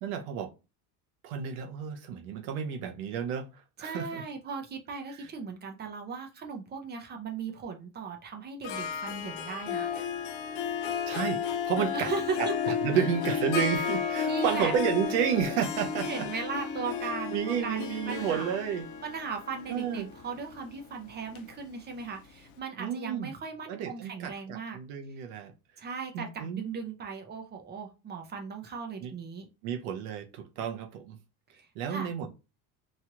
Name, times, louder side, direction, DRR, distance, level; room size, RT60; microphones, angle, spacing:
voice 1, 0.0-0.5 1.2-4.2 11.1-12.1 12.4-16.3 17.0-18.9 19.7-20.1 22.8-23.3 23.7-25.5 25.8-25.9 26.1-26.6 29.0-29.1 29.6-31.2 31.7-32.3, right 8 dB, 85° right, 0.8 m, -31 dB
voice 2, 3.8-9.9 11.9-12.5 14.2-14.7 16.0-18.6 19.0-24.8 25.8-29.5 31.5-32.1, right 5 dB, 25° right, 0.5 m, -37 dB
Harp, 8.6-22.2, left 7 dB, 80° left, 0.7 m, -33 dB
3.1 x 2.4 x 2.8 m
cardioid pair, 140°, 44 cm